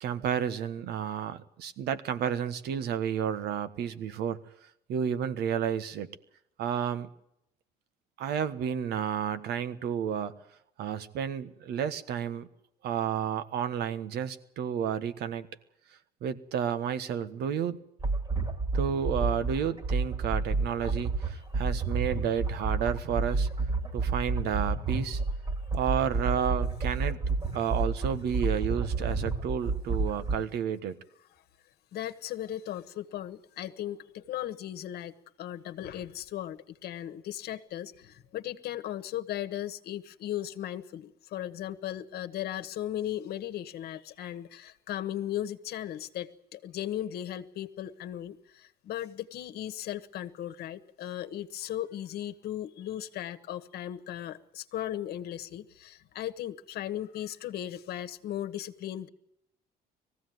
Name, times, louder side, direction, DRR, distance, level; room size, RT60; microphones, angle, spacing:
voice 1, 0.0-4.4 4.9-6.1 6.6-7.1 8.2-10.3 10.8-12.5 12.8-15.5 16.2-17.8 18.7-23.5 23.9-25.2 25.7-27.2 27.5-31.0, right 8 dB, 75° right, 12 dB, 1.4 m, -31 dB
sound 1, 18.0-30.4, right 3 dB, 30° right, 2.4 m, -30 dB
voice 2, 31.9-59.1, left 12 dB, 70° left, 9 dB, 1.4 m, -37 dB
19.5 x 15.5 x 9.4 m, 0.78 s
cardioid pair, 105°, 17 cm